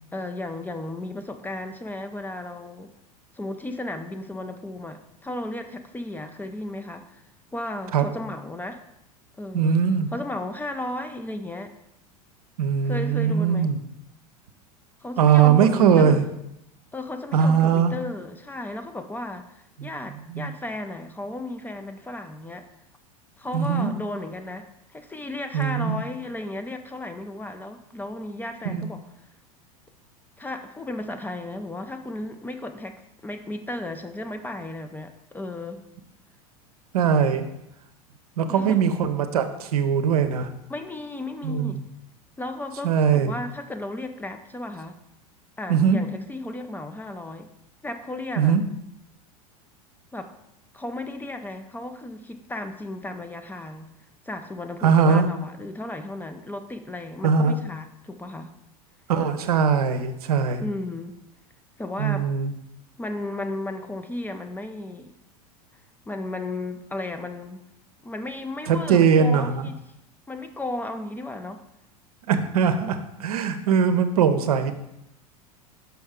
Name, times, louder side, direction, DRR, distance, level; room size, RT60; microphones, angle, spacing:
voice 1, 0.1-2.9 3.3-7.2 7.5-8.8 9.4-9.8 10.1-11.8 12.8-13.7 15.0-16.3 16.9-22.7 23.4-29.0 30.4-35.9 38.6-38.8 40.7-41.8 42.4-45.0 45.6-47.5 47.8-48.6 50.1-50.4 50.7-53.9 54.3-58.6 60.5-61.1 61.8-62.3 63.0-65.2 66.1-67.7 68.0-69.8 70.3-71.6, left 2 dB, 10° left, 7 dB, 0.4 m, -34 dB
voice 2, 9.5-10.1 12.6-13.8 15.2-16.2 17.3-17.9 19.8-19.9 20.3-20.5 23.5-23.9 25.5-26.0 28.6-28.9 36.9-37.5 38.4-40.5 41.4-41.8 42.8-43.4 45.7-46.0 48.4-48.6 54.8-55.3 57.2-57.6 59.1-60.6 62.0-62.5 68.7-69.7 72.3-74.7, right 7 dB, 70° right, 8 dB, 0.6 m, -20 dB
5.8 x 5.3 x 3.6 m, 0.84 s
figure-of-eight pair, 85°, 20 cm